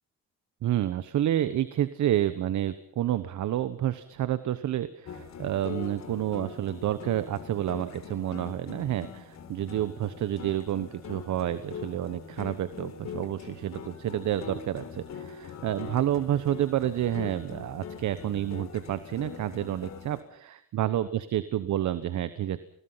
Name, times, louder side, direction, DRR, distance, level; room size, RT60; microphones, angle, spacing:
voice 1, 0.6-22.6, right 12 dB, 70° right, 13 dB, 1.2 m, -29 dB
sound 1, 5.0-20.2, left 6 dB, 60° left, 4.0 m, -42 dB
29.0 x 21.0 x 5.8 m, 0.64 s
cardioid pair, 90°, 30 cm